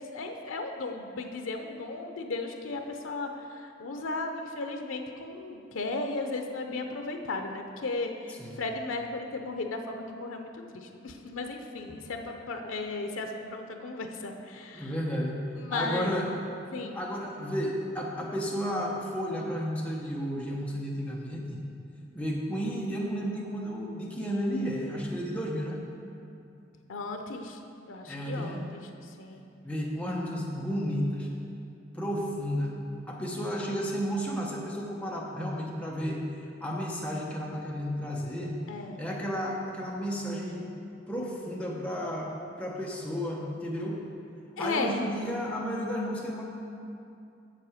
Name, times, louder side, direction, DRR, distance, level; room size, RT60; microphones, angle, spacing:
voice 1, 0.1-14.9 15.6-16.1 16.7-17.0 26.9-27.6 27.9-29.4 38.7-39.0 44.6-45.0, left 3 dB, 85° left, 4 dB, 0.6 m, -35 dB
voice 2, 14.7-15.4 15.7-16.3 16.9-21.6 22.1-25.8 28.1-28.6 29.6-31.3 31.9-32.7 33.1-36.2 36.6-38.6 39.0-40.7 41.1-42.3 42.6-44.0 44.6-46.4, equal, 5° left, -3 dB, 0.9 m, -32 dB
7.6 x 6.8 x 4.9 m, 2.6 s
head